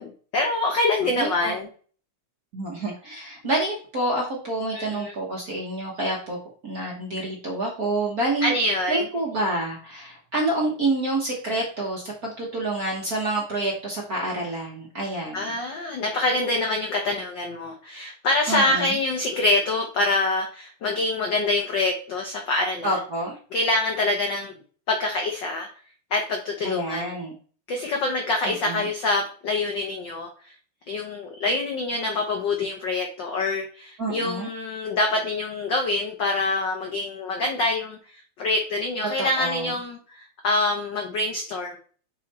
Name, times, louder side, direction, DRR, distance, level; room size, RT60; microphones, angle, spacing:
voice 1, 0.0-1.7 4.7-5.1 8.4-9.0 15.3-23.0 23.5-24.5 24.9-25.7 26.1-27.1 27.7-30.5 30.9-41.8, left 2 dB, 85° left, 2 dB, 1.0 m, -25 dB
voice 2, 1.2-1.5 2.5-6.4 6.6-8.6 8.9-15.5 18.5-19.0 22.8-23.3 26.6-27.3 28.4-28.9 34.0-34.5 39.0-39.7, right 2 dB, 50° right, -2 dB, 1.1 m, -28 dB
6.1 x 4.0 x 4.2 m, 0.41 s
omnidirectional pair, 3.3 m